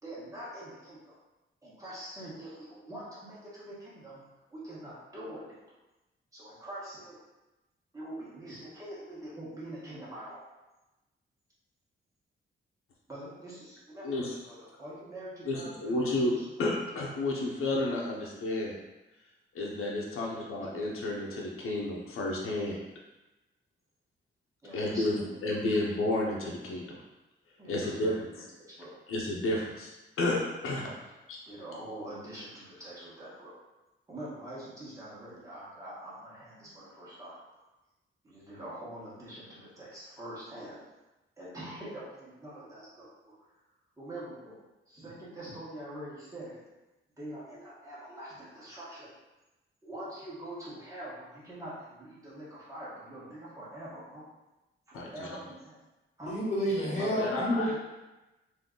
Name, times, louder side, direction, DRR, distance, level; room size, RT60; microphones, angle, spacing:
voice 1, 0.0-1.1 1.6-4.2 4.5-5.4 5.7-5.8 6.3-7.2 7.9-10.4 13.1-16.7 24.6-25.8 27.6-29.0 31.4-33.5 34.1-37.4 38.2-40.8 41.4-43.4 44.0-44.6 44.9-46.6 47.2-49.1 49.8-54.2 54.9-55.8 56.2-56.3, right 1 dB, 15° right, -8 dB, 1.3 m, -44 dB
voice 2, 14.0-14.3 15.5-16.3 16.6-18.7 19.5-22.8 24.7-27.0 27.7-28.1 29.1-29.9 30.2-30.9 31.3-31.4 54.9-55.1 56.8-57.7, left 2 dB, 90° left, -3 dB, 0.7 m, -31 dB
voice 3, 56.3-57.7, equal, 35° left, -6 dB, 1.3 m, -29 dB
3.8 x 2.7 x 3.7 m, 1.0 s
wide cardioid pair, 170°, 21 cm